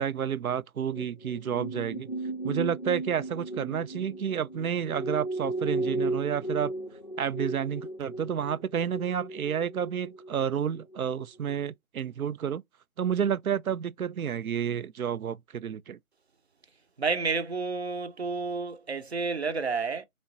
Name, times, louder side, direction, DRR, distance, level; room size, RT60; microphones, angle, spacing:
voice 1, 0.0-2.1 2.4-6.7 7.2-12.6 13.0-16.0, right 8 dB, 85° right, 0.5 m, -30 dB
sound 1, 0.9-11.2 11.5-11.7, right 2 dB, 40° left, 0.4 m, -35 dB
voice 2, 17.0-20.0, right 4 dB, 50° right, 0.7 m, -30 dB
3.4 x 3.1 x 3.9 m
figure-of-eight pair, 165°, 42 cm